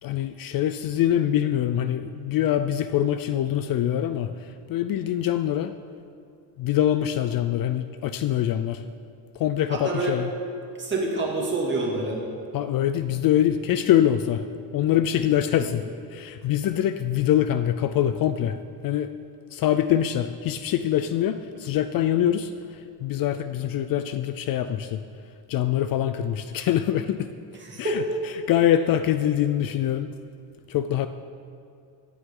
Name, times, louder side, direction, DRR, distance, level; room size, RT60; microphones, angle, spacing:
voice 1, 0.0-5.7 6.6-8.8 9.3-10.3 12.5-14.4 14.7-15.8 16.1-18.6 18.8-19.1 19.5-25.0 25.5-27.3 27.8-28.0 28.5-30.1 30.7-31.1, left 11 dB, 55° left, 11 dB, 0.5 m, -24 dB
voice 2, 9.7-10.1 10.8-12.2 27.6-28.0, right 2 dB, 25° right, -3 dB, 2.3 m, -27 dB
15.0 x 9.5 x 3.8 m, 2.4 s
cardioid pair, 135°, 43 cm